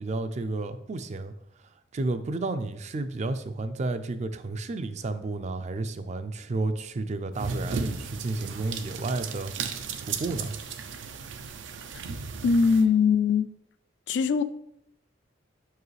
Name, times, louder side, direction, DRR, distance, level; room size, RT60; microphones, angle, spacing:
voice 1, 0.0-1.3 1.9-9.5 10.0-10.6, right 2 dB, 40° right, 0.4 m, -31 dB
sound 1, 7.4-12.8, right 5 dB, 90° right, 0.5 m, -35 dB
voice 2, 12.4-13.5 14.1-14.4, left 5 dB, 70° left, 0.3 m, -21 dB
6.1 x 4.7 x 3.2 m
head